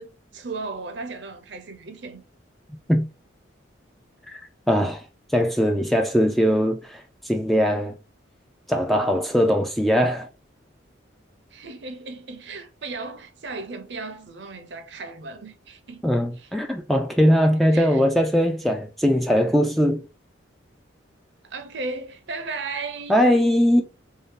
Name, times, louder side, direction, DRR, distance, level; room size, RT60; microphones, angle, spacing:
voice 1, 0.0-2.2 11.5-16.1 16.4-16.5 17.7-18.0 21.4-23.2, right 3 dB, 65° right, 0.7 m, -35 dB
voice 2, 4.7-5.0 5.3-7.9 8.7-10.3 16.0-20.0 23.1-23.8, equal, ahead, 0.4 m, -20 dB
3.6 x 2.7 x 3.6 m
head